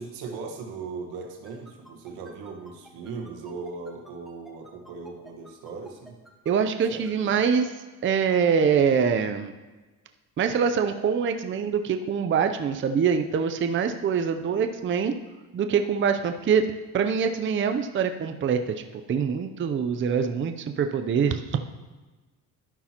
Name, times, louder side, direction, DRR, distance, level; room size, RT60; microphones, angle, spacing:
voice 1, 0.0-6.2 6.9-7.3 14.4-14.7, right 4 dB, 80° right, 1 dB, 1.5 m, -38 dB
sound 1, 1.4-7.7, right 1 dB, ahead, 1.4 m, -50 dB
voice 2, 6.5-7.7 8.0-9.5 10.4-15.1 15.5-16.6 16.9-21.4, right 6 dB, 30° right, 7 dB, 0.6 m, -24 dB
12.0 x 5.5 x 2.9 m, 1.2 s
supercardioid pair, 80°, 39 cm